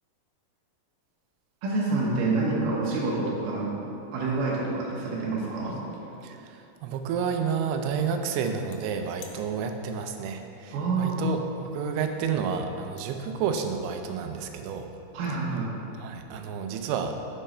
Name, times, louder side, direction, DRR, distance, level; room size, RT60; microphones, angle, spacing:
voice 1, 1.6-3.7 4.1-5.7 10.7-11.3 15.1-15.7, right 3 dB, 70° right, -4 dB, 2.2 m, -27 dB
sound 1, 4.8-5.0 5.3-6.7 8.7-8.8 9.2-9.4 11.3-11.4 12.3-12.4 13.0-13.1 13.4-13.7, left 6 dB, 80° left, 2.3 m, -49 dB
voice 2, 6.2-14.9 16.0-17.2, right 6 dB, 90° right, 6 dB, 2.6 m, -30 dB
6.6 x 5.3 x 4.3 m, 2.7 s
omnidirectional pair, 4.6 m